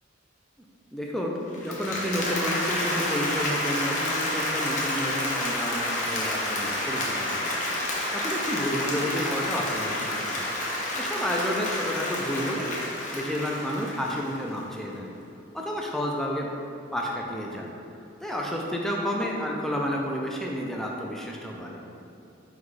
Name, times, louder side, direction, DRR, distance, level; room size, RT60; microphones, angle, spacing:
voice 1, 0.9-7.6 7.8-10.4 10.9-15.1 15.5-16.5 16.9-17.7 18.2-21.8, equal, ahead, -2 dB, 0.3 m, -31 dB
Applause, 1.5-14.6, left 1 dB, 40° left, 0.6 m, -29 dB
4.6 x 2.3 x 3.9 m, 2.7 s
head